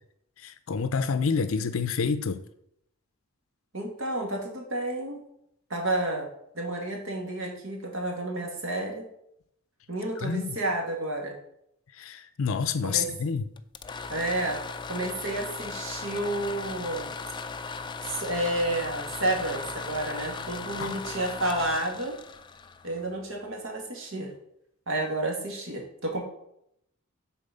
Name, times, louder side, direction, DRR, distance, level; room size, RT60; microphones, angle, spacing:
voice 1, 0.4-2.4 10.2-10.6 12.0-13.4 20.8-20.9, left 5 dB, 80° left, 0.5 m, -28 dB
voice 2, 3.7-5.2 5.7-6.3 6.5-9.1 9.9-11.3 12.8-13.1 14.1-14.6 14.9-17.1 18.0-22.2 22.8-24.3 24.9-26.2, right 1 dB, 70° right, 2.1 m, -30 dB
sound 1, 13.6-23.4, left 4 dB, 20° left, 0.4 m, -38 dB
7.1 x 4.5 x 6.8 m
head